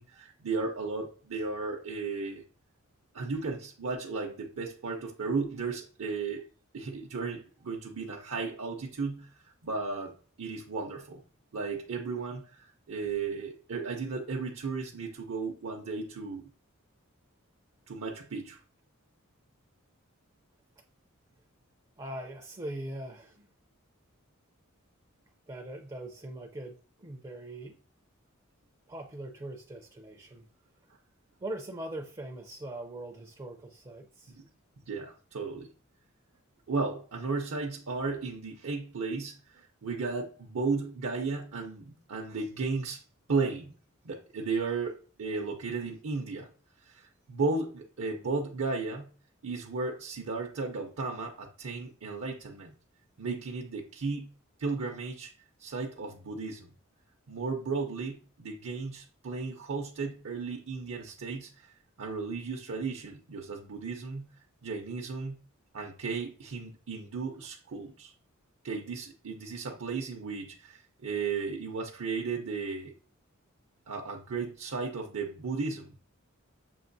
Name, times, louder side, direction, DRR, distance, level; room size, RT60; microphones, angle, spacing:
voice 1, 0.0-2.4 3.1-6.5 6.7-9.3 9.6-11.2 11.5-16.5 17.9-18.6 34.3-34.5 34.9-35.7 36.7-43.0 43.3-43.7 44.0-46.5 46.8-49.1 49.4-52.7 53.2-54.3 54.6-55.3 55.6-56.7 57.3-65.4 65.7-68.1 68.6-72.9 73.9-75.9, right 4 dB, 70° right, 0 dB, 0.6 m, -35 dB
voice 2, 22.0-23.5 25.5-27.8 28.9-30.4 31.4-34.3, right 1 dB, 20° right, 3 dB, 0.4 m, -41 dB
7.1 x 2.9 x 2.6 m, 0.39 s
head